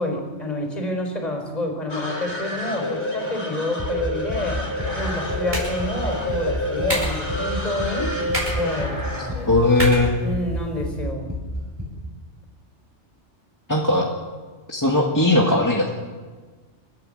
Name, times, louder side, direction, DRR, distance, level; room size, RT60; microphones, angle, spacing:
voice 1, 0.0-4.6 4.9-8.1 8.5-9.5 10.2-11.4, left 1 dB, 35° left, 3 dB, 4.5 m, -28 dB
sound 1, 1.9-10.3, left 1 dB, 65° left, 4.1 m, -29 dB
sound 2, 3.8-11.8, left 1 dB, 15° right, 6.7 m, -30 dB
sound 3, 5.0-11.0, equal, 40° right, 7.8 m, -33 dB
voice 2, 9.4-10.2 13.7-14.1 14.7-15.9, left 2 dB, 15° left, -1 dB, 1.9 m, -18 dB
29.5 x 12.5 x 7.8 m, 1.4 s
omnidirectional pair, 1.2 m